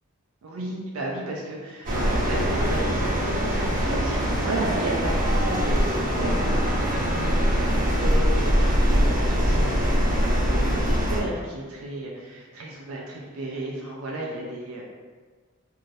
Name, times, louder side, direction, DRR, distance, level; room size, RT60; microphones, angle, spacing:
voice 1, 0.4-14.8, right 2 dB, 80° right, -3 dB, 0.4 m, -34 dB
sound 1, 1.8-11.2, equal, 40° right, 0.6 m, -22 dB
2.7 x 2.5 x 3.1 m, 1.5 s
head